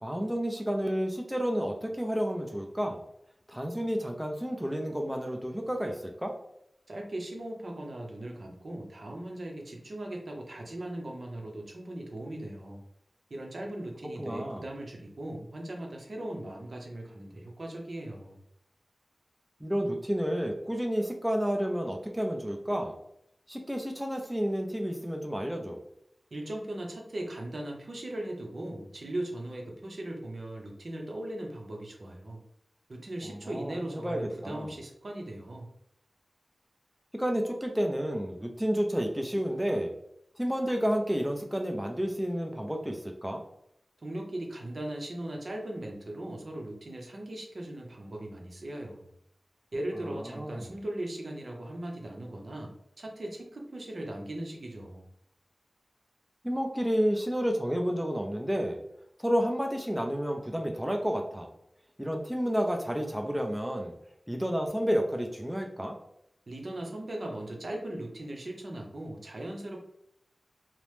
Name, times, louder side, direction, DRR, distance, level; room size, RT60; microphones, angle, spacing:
voice 1, 0.0-3.0 3.5-6.3 14.2-14.6 19.6-22.9 23.5-25.8 33.3-34.7 37.1-39.9 40.4-43.4 50.3-50.7 56.4-58.8 59.2-61.5 62.0-63.9 64.3-66.0, equal, 5° right, 2 dB, 0.4 m, -30 dB
voice 2, 6.9-12.8 13.3-18.4 26.3-32.4 32.9-35.7 44.0-49.1 49.7-55.1 66.5-69.8, right 1 dB, 65° right, 1 dB, 0.6 m, -39 dB
2.8 x 2.0 x 3.2 m, 0.75 s
wide cardioid pair, 70°, 0 cm